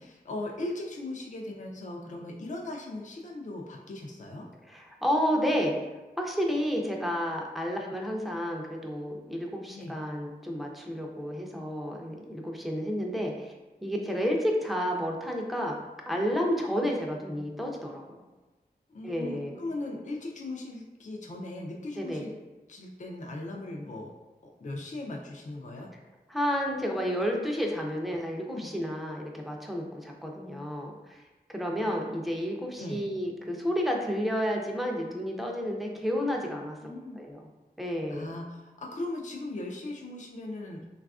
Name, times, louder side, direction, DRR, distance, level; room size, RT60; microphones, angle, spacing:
voice 1, 0.0-4.5 9.7-9.9 18.9-22.3 22.7-24.1 24.4-25.9 28.5-28.7 31.8-31.9 32.8-33.0 36.8-37.2 38.1-40.9, left 2 dB, 50° left, 0 dB, 0.5 m, -38 dB
voice 2, 4.7-5.8 6.2-13.5 13.8-15.8 16.1-18.0 19.0-19.6 22.0-22.2 26.3-31.2 31.5-37.4 37.8-38.3, equal, ahead, 0 dB, 0.5 m, -31 dB
3.2 x 2.4 x 2.4 m, 1.2 s
cardioid pair, 45°, 17 cm